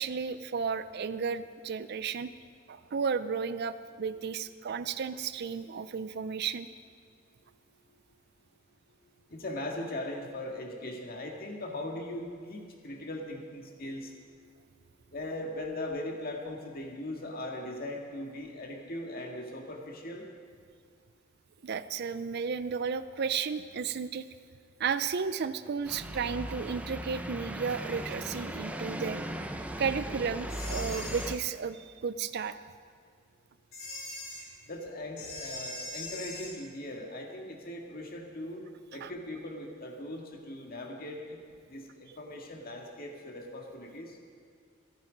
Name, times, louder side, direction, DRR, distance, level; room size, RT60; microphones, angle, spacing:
voice 1, 0.0-2.3 2.7-6.7 21.6-24.2 24.8-29.2 29.8-32.6 39.0-39.1, right 6 dB, 50° right, 12 dB, 0.4 m, -33 dB
voice 2, 9.3-14.1 15.1-20.3 34.7-38.6 38.9-41.4 41.7-44.2, left 1 dB, 45° left, 1 dB, 2.0 m, -39 dB
sound 1, 25.8-31.4, right 1 dB, 5° right, 0.7 m, -38 dB
sound 2, 30.5-31.4 33.7-34.4 35.2-36.5, left 2 dB, 70° left, 3.9 m, -41 dB
27.0 x 9.1 x 5.2 m, 2.2 s
head